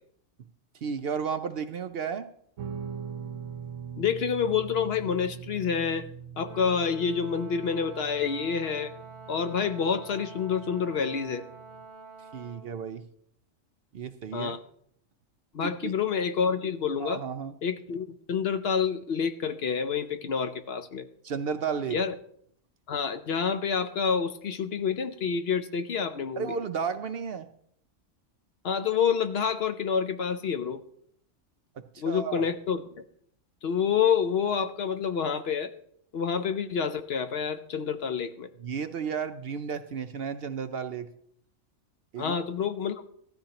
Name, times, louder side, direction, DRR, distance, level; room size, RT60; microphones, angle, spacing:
voice 1, 0.8-2.3 12.3-13.0 13.9-14.6 15.6-15.9 17.0-17.5 21.2-22.0 26.4-27.5 31.9-32.5 38.6-41.1 42.1-42.4, right 6 dB, 60° right, 10 dB, 0.7 m, -33 dB
Guitar, 2.6-11.9, right 7 dB, 75° right, 1.1 m, -42 dB
voice 2, 4.0-6.1 6.4-8.9 9.3-11.4 14.3-14.6 15.5-17.2 17.6-21.1 21.9-22.1 22.9-26.5 28.6-30.8 32.0-32.8 33.6-35.7 36.1-38.5 42.2-43.0, left 6 dB, 60° left, 10 dB, 0.8 m, -28 dB
Brass instrument, 6.4-12.7, right 3 dB, 25° right, 1.3 m, -47 dB
15.0 x 13.0 x 2.9 m, 0.68 s
omnidirectional pair, 1.3 m